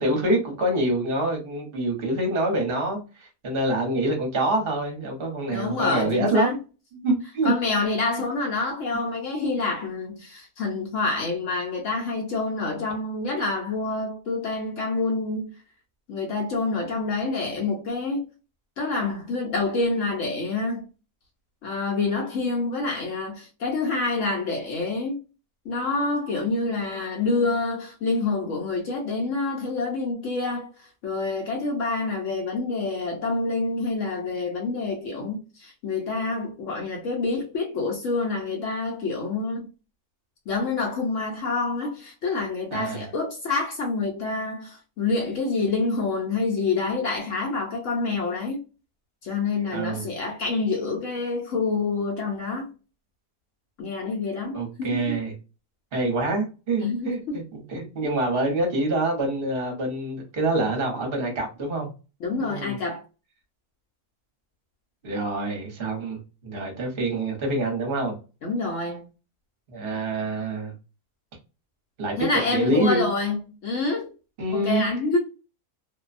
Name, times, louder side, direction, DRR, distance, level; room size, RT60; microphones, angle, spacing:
voice 1, 0.0-6.6 6.9-7.5 42.7-43.1 49.7-50.1 54.5-55.3 55.9-61.9 62.4-62.8 65.0-68.1 69.7-70.7 72.0-73.0 74.4-74.9, right 2 dB, 45° right, 1.0 m, -26 dB
voice 2, 5.5-6.6 7.4-15.5 16.1-18.2 18.8-20.9 21.6-25.2 25.7-39.7 40.5-48.6 49.2-52.7 53.8-55.1 56.8-57.4 62.2-63.0 68.4-69.1 72.2-74.1 74.5-75.2, left 3 dB, 65° left, 0.9 m, -27 dB
2.6 x 2.2 x 2.4 m
omnidirectional pair, 1.6 m